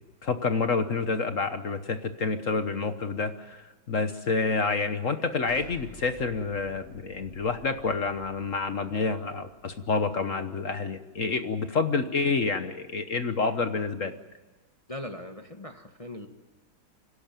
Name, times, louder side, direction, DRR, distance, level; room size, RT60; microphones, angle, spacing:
voice 1, 0.2-14.1, left 4 dB, 45° left, 9 dB, 1.2 m, -28 dB
Explosion, 5.5-10.3, right 2 dB, 35° right, 4.0 m, -51 dB
voice 2, 14.9-16.3, left 1 dB, 20° left, 5 dB, 1.2 m, -40 dB
25.5 x 17.0 x 9.1 m, 1.2 s
omnidirectional pair, 2.4 m